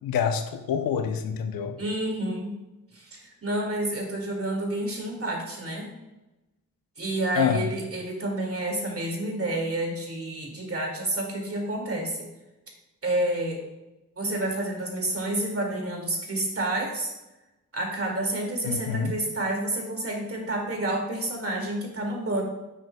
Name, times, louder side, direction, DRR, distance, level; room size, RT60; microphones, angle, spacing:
voice 1, 0.0-1.8 7.3-7.7 18.6-19.1, left 7 dB, 85° left, 7 dB, 0.7 m, -26 dB
voice 2, 1.8-2.5 2.9-5.9 7.0-12.3 13.0-13.6 14.2-17.1 17.7-22.4, right 1 dB, 40° right, 0 dB, 2.3 m, -29 dB
9.0 x 6.4 x 2.3 m, 1.0 s
supercardioid pair, 45°, 34 cm